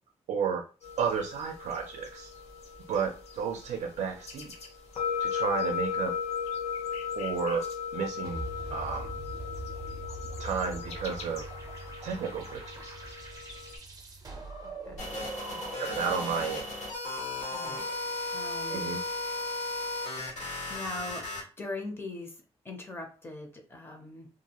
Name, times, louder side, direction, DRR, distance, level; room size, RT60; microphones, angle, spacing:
voice 1, 0.3-0.6 1.0-2.3 2.9-4.5 5.2-6.1 7.1-7.6 7.9-8.4 8.7-9.1 10.4-11.5 12.0-12.9 15.8-16.7 18.7-19.0, right 6 dB, 85° right, 4 dB, 0.4 m, -32 dB
sound 1, 0.8-13.8, left 7 dB, 70° left, 0.7 m, -37 dB
sound 2, 8.2-16.1, right 2 dB, 35° right, 0.5 m, -42 dB
sound 3, 15.0-21.4, left 2 dB, 90° left, 1.3 m, -35 dB
voice 2, 17.5-17.8 18.3-18.9 20.7-21.3 21.6-24.3, left 2 dB, 20° left, 3 dB, 0.5 m, -40 dB
2.4 x 2.3 x 2.8 m, 0.35 s
wide cardioid pair, 175°, 11 cm